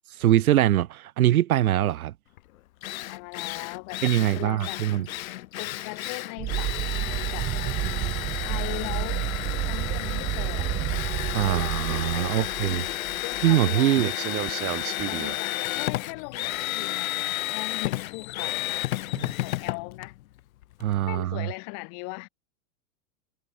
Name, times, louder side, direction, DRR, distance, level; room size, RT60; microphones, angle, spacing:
voice 1, 0.2-2.1 4.0-5.1 11.3-12.8 13.4-14.1 19.1-19.3 20.8-21.5, right 13 dB, 85° right, 1.9 m, -23 dB
Drill, 2.4-2.5 2.8-20.9, left 15 dB, 75° left, 2.2 m, -32 dB
voice 2, 3.1-4.8 5.6-7.5 8.4-9.3 9.6-10.7 11.4-14.0 15.1-17.2 17.5-18.9 19.2-20.2 21.1-22.3, left 39 dB, 50° left, 1.7 m, -39 dB
sound 1, 6.4-13.6 14.0-15.4, right 16 dB, 35° right, 1.0 m, -31 dB
hypercardioid pair, 120°, 42 cm